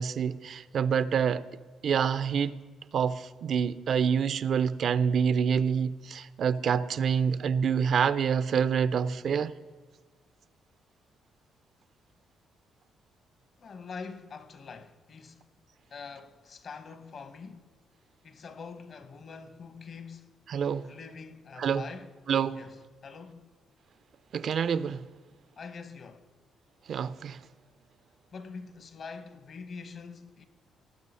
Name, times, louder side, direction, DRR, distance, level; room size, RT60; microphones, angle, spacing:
voice 1, 0.0-1.5 1.8-2.6 2.9-9.5 20.5-20.9 21.6-21.8 22.3-22.6 24.3-25.0 26.9-27.4, right 7 dB, 60° right, 0.4 m, -27 dB
voice 2, 13.6-15.5 15.9-17.7 18.2-20.4 20.8-22.2 22.5-23.5 25.6-26.3 28.3-30.5, left 5 dB, 50° left, 0.9 m, -44 dB
18.0 x 6.2 x 5.5 m
cardioid pair, 90°, 0 cm